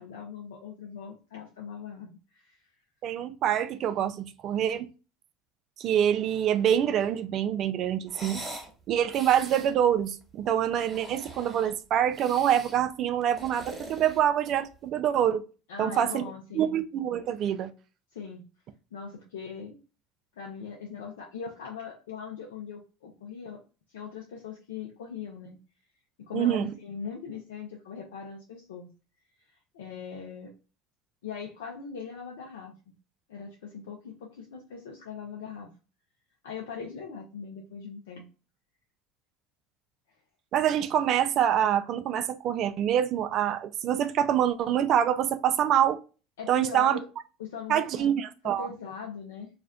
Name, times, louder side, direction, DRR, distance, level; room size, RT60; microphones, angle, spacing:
voice 1, 0.0-2.6 15.7-16.8 18.1-18.4 18.9-19.8 20.4-23.6 23.9-25.6 26.3-28.9 29.5-30.5 31.2-32.7 33.3-35.7 36.4-38.2 46.4-47.1 47.4-48.1 48.6-49.5, left 6 dB, 85° left, 0.5 m, -40 dB
voice 2, 3.0-4.9 5.8-8.4 8.9-15.4 15.8-16.2 16.5-17.7 26.3-26.7 40.5-46.0 46.5-47.0 47.7-48.7, right 10 dB, 55° right, 0.4 m, -25 dB
sound 1, 8.1-8.7 9.1-9.7 10.6-11.8 12.1-12.8 13.2-14.7, right 1 dB, 15° right, 1.3 m, -43 dB
2.5 x 2.1 x 3.6 m
hypercardioid pair, 80°, 0 cm